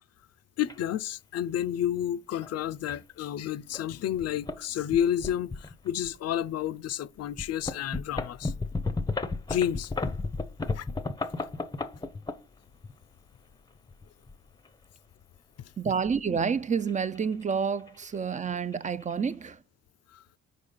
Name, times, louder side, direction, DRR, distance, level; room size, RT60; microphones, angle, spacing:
voice 1, 0.6-8.5 9.5-9.9 10.7-10.9 15.6-15.7 20.1-20.2, left 10 dB, 55° left, 0.5 m, -30 dB
sound 1, 0.7-0.8 1.6-1.8 2.4-2.5 2.9-3.0 3.7-3.9 4.2-4.6 4.9-6.2 6.7-6.8 7.3-12.9 13.7-14.7 16.4-17.5 17.8-18.1 18.3-18.4 18.7-19.1, left 3 dB, 15° left, 0.6 m, -34 dB
voice 2, 15.8-19.6, right 6 dB, 25° right, 0.4 m, -29 dB
5.2 x 4.2 x 5.5 m
cardioid pair, 90°, 30 cm